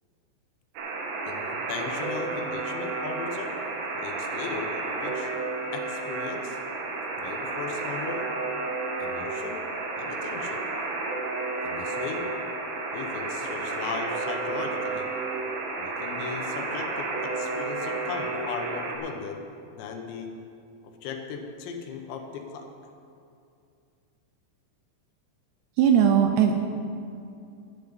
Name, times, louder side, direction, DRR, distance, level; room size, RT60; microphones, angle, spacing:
Alarm, 0.7-19.0, right 3 dB, 65° right, 2.6 m, -32 dB
voice 1, 1.2-3.6 3.9-5.3 5.7-6.6 7.2-8.3 9.0-9.6 10.0-10.6 11.6-12.3 12.9-15.1 15.8-19.4 19.7-20.3 21.0-22.7, left 5 dB, 80° left, 4 dB, 3.2 m, -37 dB
voice 2, 25.8-26.5, right 8 dB, 80° right, 5 dB, 2.5 m, -19 dB
11.5 x 7.1 x 8.7 m, 2.5 s
omnidirectional pair, 5.3 m